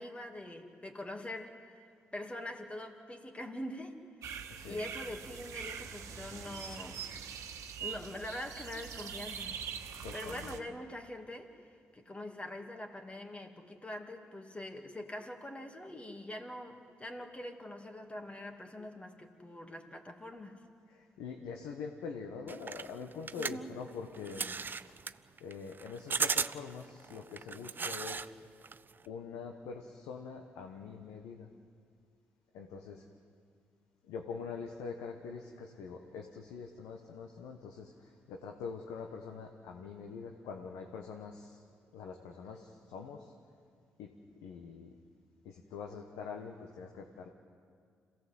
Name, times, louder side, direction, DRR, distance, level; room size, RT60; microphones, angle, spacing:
voice 1, 0.0-7.0 7.8-9.7 10.1-11.6 11.9-20.6 23.3-23.7, left 1 dB, 20° left, 4 dB, 2.6 m, -44 dB
sound 1, 4.2-10.6, right 7 dB, 75° right, 1.4 m, -43 dB
voice 2, 4.5-4.8 10.0-10.5 21.0-24.6 25.4-28.4 29.0-31.5 32.5-33.0 34.1-41.6 41.9-43.3 44.0-44.1 44.4-44.9 45.4-47.3, left 5 dB, 85° left, 3 dB, 1.3 m, -44 dB
sound 2, 22.5-28.3 28.6-29.1, right 5 dB, 40° right, 0.6 m, -36 dB
26.5 x 17.0 x 7.8 m, 2.2 s
supercardioid pair, 55°, 5 cm